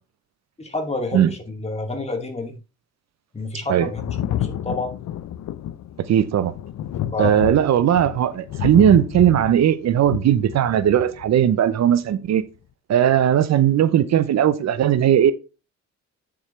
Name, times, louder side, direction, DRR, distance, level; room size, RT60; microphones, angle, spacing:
voice 1, 0.6-2.5 3.3-5.0 7.1-7.5, left 2 dB, 20° left, 2.5 m, -29 dB
Thunder, 4.0-11.3 12.4-12.5, left 11 dB, 70° left, 0.7 m, -29 dB
voice 2, 6.1-6.5 7.2-12.4 12.9-15.3, right 10 dB, 60° right, 0.8 m, -18 dB
8.9 x 7.1 x 3.3 m
cardioid pair, 90°, 30 cm